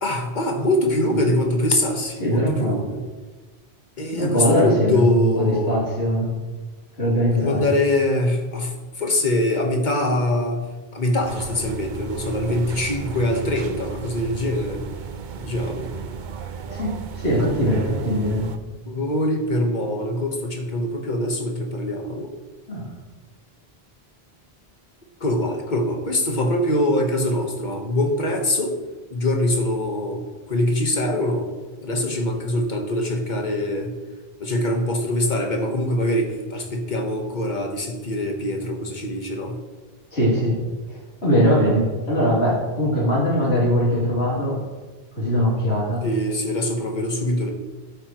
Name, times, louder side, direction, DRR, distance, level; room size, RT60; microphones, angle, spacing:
voice 1, 0.0-3.0 4.0-5.8 7.3-10.7 10.9-14.8 15.4-15.9 18.8-22.3 25.2-28.7 29.1-31.5 31.8-33.9 34.4-39.6 46.0-47.5, left 1 dB, 45° left, 2 dB, 1.5 m, -23 dB
voice 2, 2.2-2.8 4.1-6.3 7.0-7.7 16.7-18.5 22.7-22.9 40.1-40.6 40.9-44.6 45.1-46.1, equal, 85° left, -5 dB, 3.5 m, -21 dB
sound 1, 11.2-18.6, right 6 dB, 55° right, 0.7 m, -33 dB
12.0 x 8.9 x 3.1 m, 1.3 s
omnidirectional pair, 1.1 m